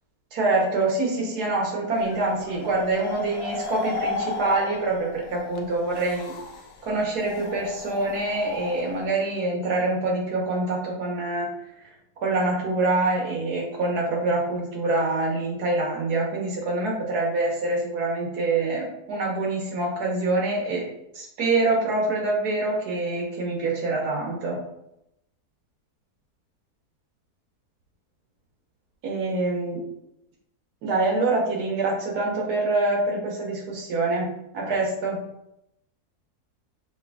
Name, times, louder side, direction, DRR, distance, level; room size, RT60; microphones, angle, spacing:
voice 1, 0.3-6.3 6.8-11.5 11.8-11.9 12.2-20.9 21.1-24.6 29.0-29.8 30.8-34.3 34.5-35.2, right 2 dB, 75° right, -1 dB, 1.5 m, -25 dB
sound 1, 1.9-9.1, left 3 dB, 80° left, 0.5 m, -35 dB
5.9 x 2.9 x 2.3 m, 0.83 s
omnidirectional pair, 1.7 m